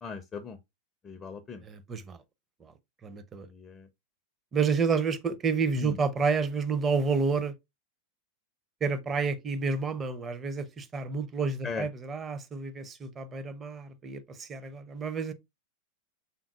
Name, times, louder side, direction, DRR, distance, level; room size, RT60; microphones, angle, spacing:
voice 1, 0.0-0.6 1.0-1.6 3.4-3.9 5.8-5.9 11.6-11.8, left 5 dB, 20° left, 0.5 m, -38 dB
voice 2, 1.6-2.2 2.6-2.7 3.0-3.5 4.5-7.5 8.8-15.3, right 5 dB, 20° right, 0.6 m, -30 dB
5.8 x 3.7 x 2.3 m
figure-of-eight pair, 90°, 0 cm